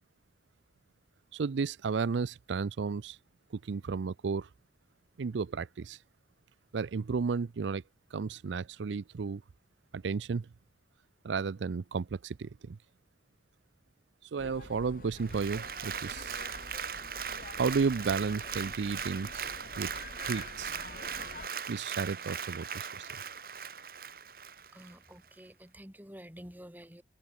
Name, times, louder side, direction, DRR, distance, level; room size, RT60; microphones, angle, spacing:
voice 1, 1.3-3.2 3.5-4.5 5.2-6.0 6.7-7.8 8.1-9.4 9.9-10.5 11.2-12.8 14.3-16.4 17.6-19.5 19.8-19.9 20.2-20.8 21.7-23.2, right 5 dB, 85° right, 0.5 m, -33 dB
sound 1, 14.4-21.5, left 3 dB, 50° left, 1.2 m, -48 dB
Applause, 15.2-24.9 25.4-25.5, right 7 dB, 55° right, 2.7 m, -39 dB
voice 2, 24.7-27.0, equal, 10° right, 1.8 m, -49 dB
head